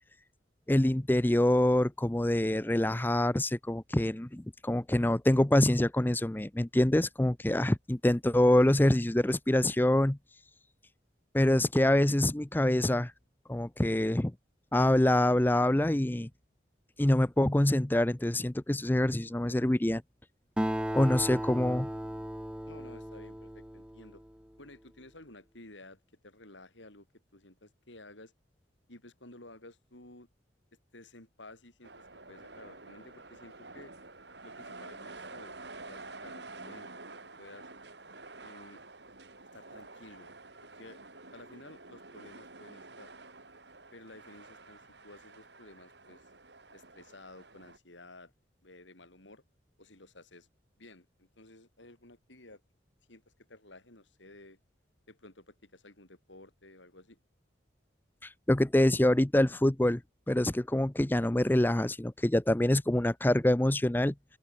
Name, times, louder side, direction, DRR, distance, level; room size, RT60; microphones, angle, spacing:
voice 1, 0.7-10.2 11.3-13.1 13.5-14.3 14.7-16.3 17.0-20.0 20.9-21.9 58.2-60.0 60.3-64.1, left 1 dB, 10° left, 0.5 m, -25 dB
Acoustic guitar, 20.6-24.4, equal, 5° right, 1.2 m, -36 dB
voice 2, 21.6-22.3 22.7-24.2 24.6-27.1 27.3-28.3 28.9-30.3 30.9-33.9 34.4-35.6 35.9-36.9 37.4-37.7 38.4-38.8 39.5-40.3 40.7-41.0 41.3-43.1 43.9-46.3 46.7-48.3 48.6-49.4 49.8-50.5 50.8-52.6 53.1-54.6 55.1-57.2, left 2 dB, 80° left, 6.2 m, -53 dB
intercity train ride, 31.8-47.8, right 3 dB, 65° right, 4.3 m, -49 dB
open air
head